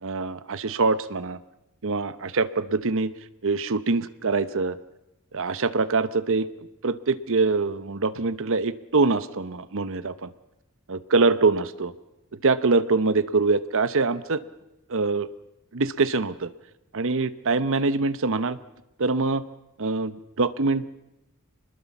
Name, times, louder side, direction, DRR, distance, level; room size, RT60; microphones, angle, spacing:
voice 1, 0.0-1.4 1.8-3.1 3.4-4.8 5.3-6.5 6.8-10.3 10.9-11.9 12.4-14.4 14.9-15.3 15.7-16.5 16.9-18.6 19.0-19.4 19.8-20.9, right 3 dB, 65° right, 14 dB, 0.9 m, -24 dB
25.5 x 21.0 x 7.2 m, 0.89 s
head